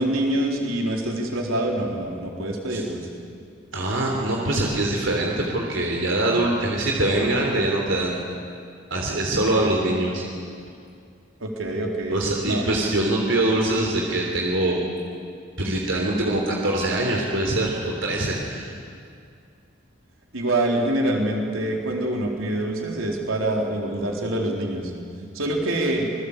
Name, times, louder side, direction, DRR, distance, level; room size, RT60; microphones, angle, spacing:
voice 1, 0.0-3.0 4.3-4.4 11.4-12.7 20.3-24.9 25.3-26.1, right 1 dB, 85° right, 0 dB, 4.1 m, -25 dB
voice 2, 3.7-8.2 8.9-10.2 12.1-14.8 15.6-18.7, right 1 dB, 70° right, -1 dB, 3.4 m, -23 dB
27.0 x 21.0 x 8.4 m, 2.3 s
head